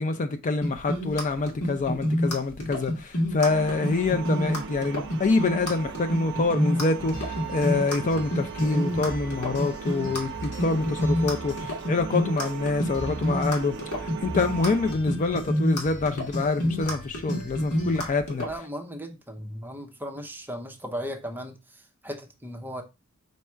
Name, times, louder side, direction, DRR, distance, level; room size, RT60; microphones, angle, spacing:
voice 1, 0.0-18.4, left 3 dB, 35° left, 0.4 m, -26 dB
sound 1, 0.6-18.5, equal, 80° left, 1.5 m, -28 dB
sound 2, 3.4-14.9, right 7 dB, 55° right, 0.4 m, -38 dB
sound 3, 7.0-18.1, right 1 dB, 50° left, 1.9 m, -42 dB
voice 2, 18.4-22.8, equal, 10° right, 0.6 m, -37 dB
5.3 x 2.4 x 4.2 m
head